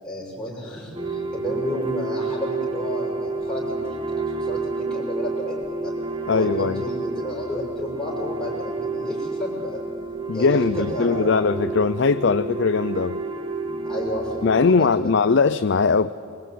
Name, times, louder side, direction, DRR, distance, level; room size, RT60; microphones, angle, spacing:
voice 1, 0.0-5.9 6.3-9.8 10.3-11.3 13.8-14.9, left 1 dB, 5° left, 6.2 m, -32 dB
sound 1, 0.9-14.8, right 3 dB, 25° right, 2.0 m, -29 dB
voice 2, 6.3-6.8 10.3-13.2 14.4-16.1, left 4 dB, 65° left, 0.5 m, -20 dB
25.0 x 23.0 x 9.3 m
head